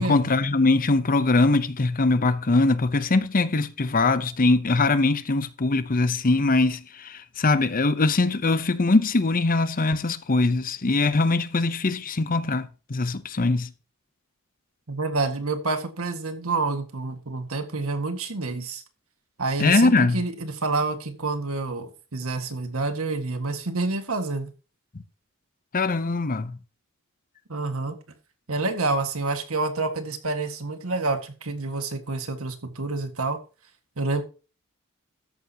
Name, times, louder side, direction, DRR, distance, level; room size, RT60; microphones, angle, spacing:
voice 1, 0.0-13.7 19.6-20.2 25.7-26.6, left 3 dB, 40° left, 0.8 m, -22 dB
voice 2, 14.9-18.8 19.4-24.5 27.5-28.0 28.5-33.4 34.0-34.2, right 3 dB, 75° right, 1.8 m, -28 dB
13.5 x 9.7 x 2.9 m
head